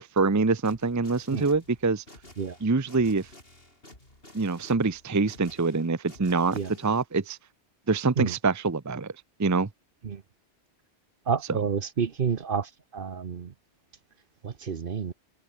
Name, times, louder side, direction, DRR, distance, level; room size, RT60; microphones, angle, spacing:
voice 1, 0.0-2.0 2.6-3.3 4.3-7.4 7.9-9.1 9.4-9.7 11.5-11.6, right 4 dB, 20° right, 0.6 m, -25 dB
sound 1, 0.6-7.0, left 1 dB, 55° left, 6.5 m, -52 dB
voice 2, 11.3-13.5 14.4-15.1, right 6 dB, 50° right, 1.1 m, -29 dB
omnidirectional pair, 1.2 m